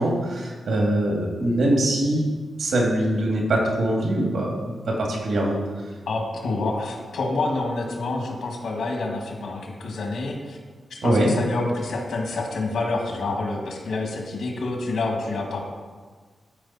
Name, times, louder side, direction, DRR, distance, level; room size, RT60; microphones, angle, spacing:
voice 1, 0.0-2.2 2.6-5.5 11.0-11.3, right 1 dB, 75° right, -1 dB, 2.2 m, -23 dB
voice 2, 6.1-10.6 10.9-15.6, left 2 dB, 85° left, 0 dB, 1.9 m, -28 dB
13.0 x 5.1 x 4.2 m, 1.4 s
wide cardioid pair, 160°, 0 cm